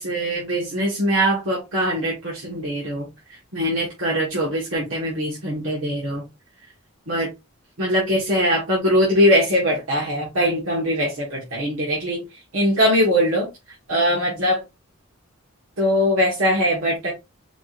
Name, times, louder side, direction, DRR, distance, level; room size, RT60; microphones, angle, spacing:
voice 1, 0.0-3.1 3.5-6.2 7.1-7.3 7.8-12.2 12.5-13.5 13.9-14.6 15.8-17.1, equal, 90° right, -4 dB, 1.6 m, -21 dB
4.8 x 2.6 x 3.1 m, 0.23 s
head